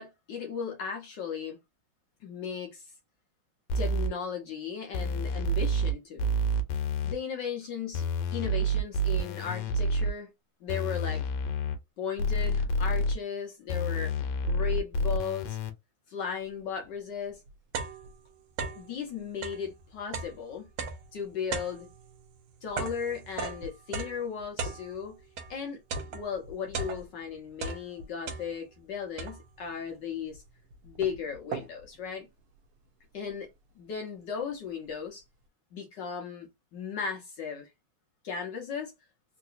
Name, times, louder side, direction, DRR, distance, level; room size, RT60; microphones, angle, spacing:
voice 1, 0.0-1.6 2.2-2.9 3.7-6.3 7.0-8.1 8.3-10.3 10.6-11.3 12.0-14.1 14.4-15.6 16.1-17.4 18.7-20.7 21.1-21.9 22.6-25.2 25.5-25.8 26.1-30.4 30.8-32.3 33.1-33.5 33.8-35.2 35.7-37.7 38.2-38.9, left 6 dB, 70° left, 1.2 m, -36 dB
sound 1, 3.7-4.1 4.9-5.9 6.2-7.1 7.9-10.1 10.7-11.8 12.2-13.1 13.7-15.7, equal, 90° left, 1.6 m, -28 dB
sound 2, 16.8-16.9 17.3-19.0 19.3-25.6 25.9-27.3 27.6-28.8 29.2-29.7 30.3-30.4 30.7-32.0, right 4 dB, 80° right, 1.4 m, -38 dB
3.8 x 2.6 x 2.4 m
omnidirectional pair, 2.3 m